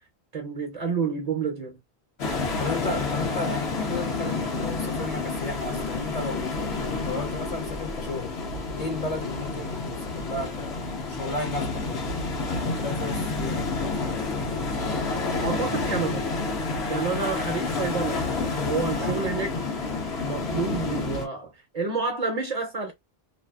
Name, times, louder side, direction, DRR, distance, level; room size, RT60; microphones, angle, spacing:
voice 1, 0.3-1.8 15.4-16.2 16.9-18.2 18.6-19.5 20.2-22.9, right 5 dB, 45° right, 0.6 m, -29 dB
sound 1, 2.2-21.3, left 3 dB, 80° left, 1.0 m, -29 dB
voice 2, 2.6-8.3 8.8-12.0 12.6-14.2 18.9-19.4, left 3 dB, 45° left, 0.6 m, -34 dB
2.6 x 2.4 x 2.2 m
omnidirectional pair, 1.1 m